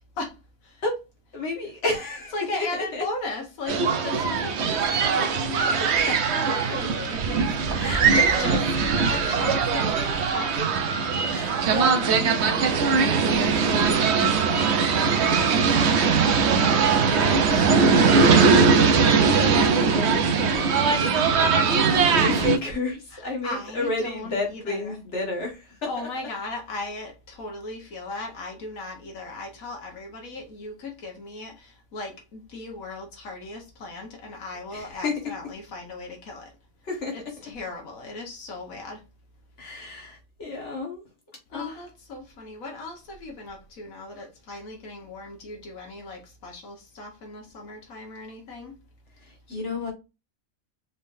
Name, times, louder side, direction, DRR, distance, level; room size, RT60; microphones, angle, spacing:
voice 1, 1.3-3.0 6.1-6.2 6.5-6.6 7.7-8.6 11.2-16.5 17.1-17.7 18.4-26.1 34.7-35.1 36.8-37.2 39.6-41.0 41.5-41.8 49.2-49.9, left 3 dB, 60° left, 2.1 m, -32 dB
voice 2, 2.3-7.6 8.0-10.7 16.5-18.3 21.2-21.8 23.1-25.0 25.9-36.5 37.1-39.0 41.5-48.8, left 2 dB, 85° left, 1.7 m, -37 dB
sound 1, 3.7-22.6, right 5 dB, 60° right, 0.9 m, -21 dB
5.1 x 3.7 x 2.6 m
omnidirectional pair, 1.4 m